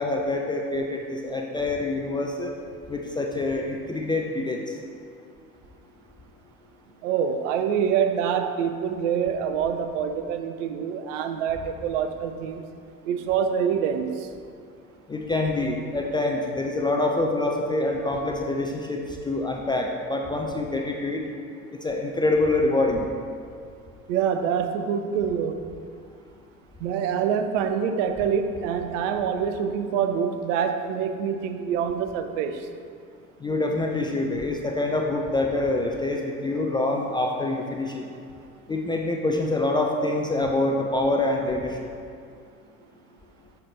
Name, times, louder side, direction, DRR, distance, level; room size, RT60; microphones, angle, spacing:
voice 1, 0.0-2.5 2.9-4.6 15.1-21.2 21.8-23.1 33.4-38.0 38.7-41.9, left 2 dB, 10° left, 1 dB, 0.3 m, -26 dB
voice 2, 7.0-12.6 13.1-14.3 24.1-25.6 26.8-32.6, right 7 dB, 65° right, 8 dB, 0.6 m, -26 dB
6.6 x 5.6 x 3.1 m, 2.3 s
figure-of-eight pair, 65°, 42 cm